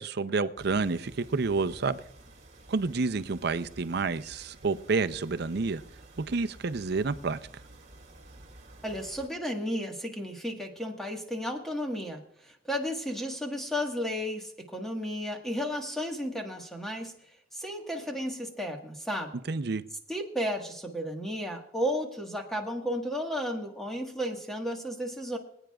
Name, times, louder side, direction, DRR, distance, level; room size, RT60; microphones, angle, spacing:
voice 1, 0.0-2.0 2.7-5.8 6.3-7.4 19.5-19.8, right 4 dB, 60° right, 0.6 m, -29 dB
sound 1, 0.6-9.3, right 2 dB, 40° right, 2.5 m, -52 dB
voice 2, 8.8-17.2 17.5-19.3 20.1-25.4, equal, ahead, 1.5 m, -33 dB
25.0 x 9.0 x 2.4 m
head